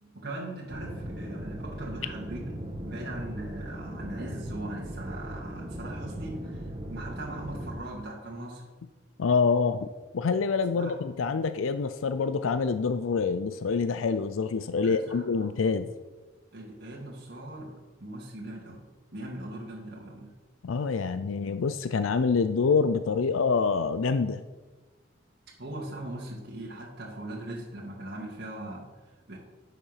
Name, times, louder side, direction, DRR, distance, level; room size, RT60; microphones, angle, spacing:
voice 1, 0.0-2.5 2.8-8.7 10.7-11.0 14.8-15.4 16.5-18.9 19.1-20.3 25.6-29.4, right 1 dB, 55° right, -3 dB, 2.0 m, -40 dB
sound 1, 0.7-7.7, equal, 30° right, 1.5 m, -38 dB
voice 2, 9.2-9.9 10.1-15.9 20.6-24.4, left 5 dB, 85° left, 12 dB, 0.5 m, -26 dB
10.5 x 7.0 x 5.7 m, 1.3 s
head